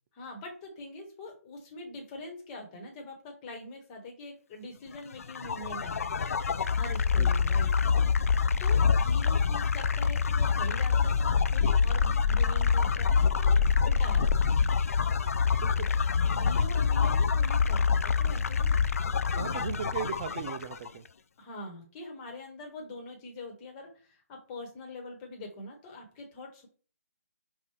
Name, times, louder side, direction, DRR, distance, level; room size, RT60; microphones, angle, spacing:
voice 1, 0.2-3.1 3.4-6.1 6.7-7.7 8.6-14.8 16.2-18.8 19.3-19.7 21.4-26.7, left 2 dB, 25° left, 1.3 m, -43 dB
sound 1, 5.2-20.9, left 6 dB, 65° left, 0.4 m, -26 dB
voice 2, 19.3-21.1, right 8 dB, 30° right, 0.3 m, -37 dB
5.3 x 2.5 x 3.3 m
figure-of-eight pair, 150°, 8 cm